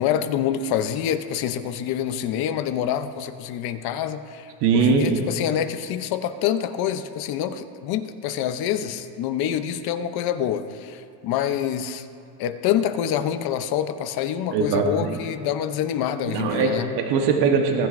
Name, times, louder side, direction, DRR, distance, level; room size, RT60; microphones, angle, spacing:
voice 1, 0.0-12.1 12.4-16.9, left 10 dB, 50° left, 10 dB, 0.7 m, -26 dB
voice 2, 4.6-5.2 14.5-15.2 16.3-17.9, right 5 dB, 55° right, 2 dB, 1.2 m, -21 dB
20.0 x 9.3 x 2.6 m, 2.6 s
cardioid pair, 155°, 50 cm